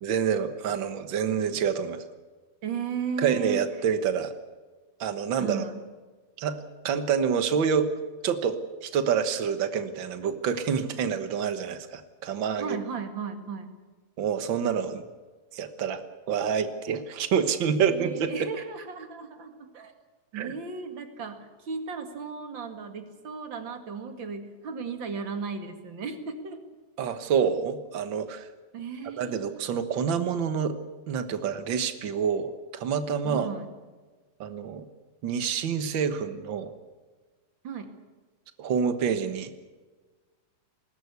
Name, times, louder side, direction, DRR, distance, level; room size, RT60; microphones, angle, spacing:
voice 1, 0.0-2.0 3.2-4.3 5.0-5.6 6.4-6.6 6.8-7.9 8.2-12.8 14.2-15.0 15.5-16.0 16.3-18.3 20.3-20.5 27.0-28.5 29.2-30.8 31.1-33.5 34.4-34.9 35.2-36.7 38.6-39.7, right 7 dB, 90° right, 9 dB, 1.0 m, -27 dB
voice 2, 2.6-3.6 5.4-5.7 12.6-13.7 17.9-19.9 20.3-26.6 28.7-29.6 33.2-33.7 37.6-37.9, right 5 dB, 40° right, 6 dB, 2.2 m, -35 dB
21.0 x 19.0 x 8.3 m, 1.3 s
omnidirectional pair, 4.1 m